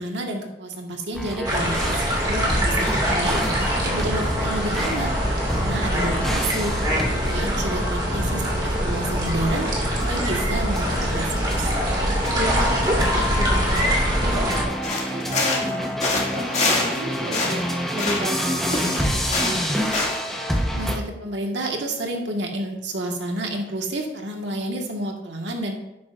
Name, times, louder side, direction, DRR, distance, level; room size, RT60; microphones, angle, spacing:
voice 1, 0.0-2.0 2.6-5.1 5.5-6.7 7.1-9.7 10.0-11.7 20.7-25.8, right 1 dB, 90° right, 1 dB, 1.6 m, -30 dB
sound 1, 1.1-21.0, equal, ahead, 1.0 m, -29 dB
sound 2, 1.4-14.6, equal, 25° right, 2.2 m, -23 dB
voice 2, 2.3-3.0 12.3-13.9 14.2-19.9, equal, 45° right, 1 dB, 1.0 m, -33 dB
sound 3, 14.8-17.0 17.2-18.4 18.7-20.3, left 3 dB, 40° left, 2.1 m, -25 dB
11.5 x 9.3 x 2.5 m, 0.92 s
head